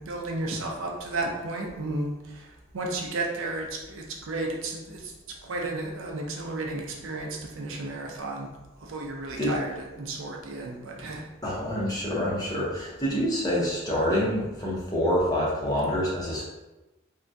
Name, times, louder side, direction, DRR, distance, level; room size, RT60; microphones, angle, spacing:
voice 1, 0.0-5.1 5.4-8.5 8.8-11.2, right 2 dB, 65° right, 0 dB, 0.5 m, -33 dB
voice 2, 11.4-16.4, equal, 20° left, -5 dB, 0.7 m, -26 dB
3.4 x 2.2 x 2.6 m, 1.0 s
head